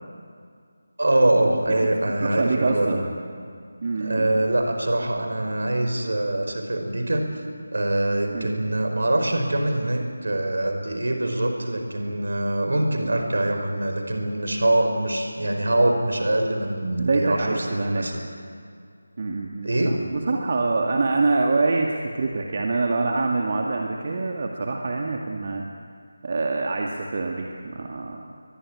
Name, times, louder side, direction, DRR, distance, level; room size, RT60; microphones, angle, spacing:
voice 1, 1.0-3.0 4.0-7.3 7.7-18.2 19.6-20.0, right 1 dB, 60° right, 4 dB, 4.9 m, -24 dB
voice 2, 2.2-3.1 3.8-4.4 8.3-8.5 17.0-18.1 19.2-19.9 20.3-25.6 26.2-28.2, right 3 dB, 40° right, 1 dB, 2.0 m, -25 dB
22.5 x 21.0 x 10.0 m, 2.2 s
figure-of-eight pair, 160°, 0 cm